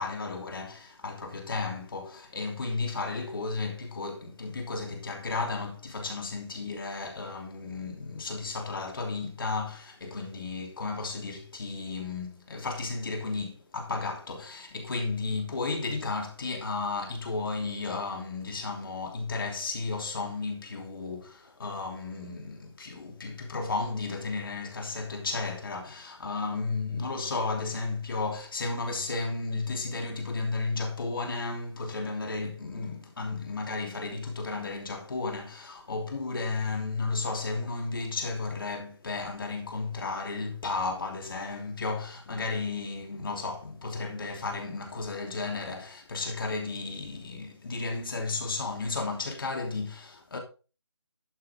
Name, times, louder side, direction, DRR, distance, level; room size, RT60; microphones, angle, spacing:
voice 1, 0.0-50.4, left 3 dB, 50° left, 3.0 m, -33 dB
11.5 x 7.5 x 3.6 m
figure-of-eight pair, 155°, 15 cm